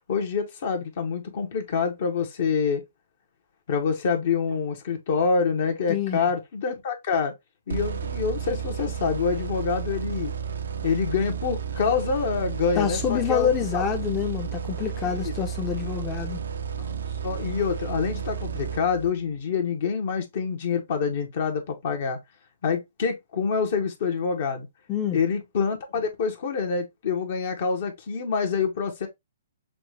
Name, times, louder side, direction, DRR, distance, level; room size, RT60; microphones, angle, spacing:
voice 1, 0.1-2.8 3.7-7.3 7.7-10.3 10.8-13.8 15.2-15.3 16.8-16.9 17.2-22.2 22.6-24.7 25.1-29.1, left 5 dB, 55° left, 1.3 m, -26 dB
voice 2, 5.9-6.2 12.8-16.4 24.9-25.2, left 9 dB, 20° left, 0.7 m, -27 dB
sound 1, 7.7-19.4, right 7 dB, 75° right, 0.6 m, -32 dB
5.9 x 2.5 x 3.2 m
hypercardioid pair, 140°, 0 cm